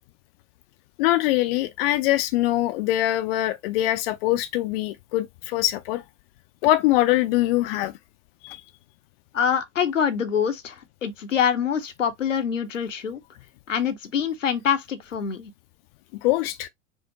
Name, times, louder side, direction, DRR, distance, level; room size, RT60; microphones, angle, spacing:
voice 1, 1.0-6.0 6.6-7.9 8.4-8.6 16.2-16.7, left 15 dB, 50° left, 0.5 m, -23 dB
voice 2, 9.3-13.2 13.7-15.5, left 7 dB, 80° left, 0.7 m, -25 dB
4.5 x 2.1 x 2.8 m
figure-of-eight pair, 85°, 37 cm